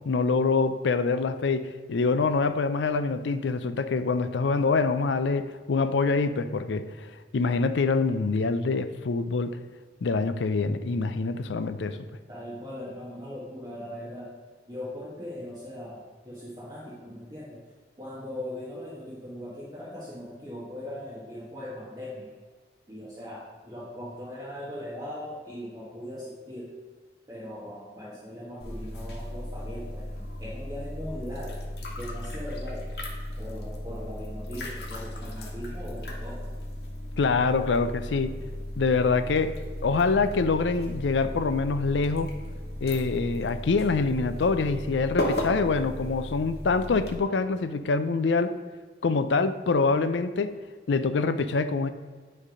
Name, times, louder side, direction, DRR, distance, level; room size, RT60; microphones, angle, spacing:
voice 1, 0.1-9.6 10.0-12.0 37.2-38.3 38.8-42.4 42.8-48.5 49.0-50.6 50.9-51.9, left 4 dB, 80° left, 11 dB, 0.5 m, -25 dB
voice 2, 12.3-14.3 14.7-17.6 18.0-22.3 22.9-26.7 27.3-31.6 32.0-32.9 33.4-36.5, left 1 dB, 20° right, -8 dB, 1.3 m, -39 dB
sound 1, 28.6-47.2, left 1 dB, 60° left, 1.2 m, -35 dB
9.8 x 3.3 x 5.1 m, 1.5 s
head